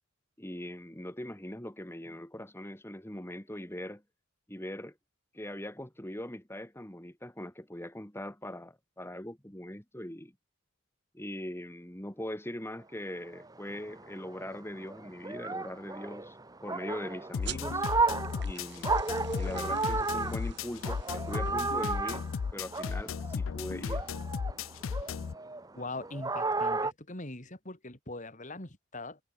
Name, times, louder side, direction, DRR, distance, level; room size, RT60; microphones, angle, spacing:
voice 1, 0.4-4.0 4.5-4.9 5.3-10.3 11.1-17.9 18.4-19.0 19.3-22.3 22.5-24.1, left 1 dB, 10° left, 2.7 m, -41 dB
sound 1, 13.3-23.5 23.9-26.9, right 3 dB, 20° right, 1.3 m, -34 dB
sound 2, 17.3-25.3, left 6 dB, 75° left, 0.4 m, -35 dB
sound 3, 17.4-22.5, right 10 dB, 55° right, 3.0 m, -48 dB
voice 2, 25.7-29.2, left 2 dB, 40° left, 3.4 m, -41 dB
head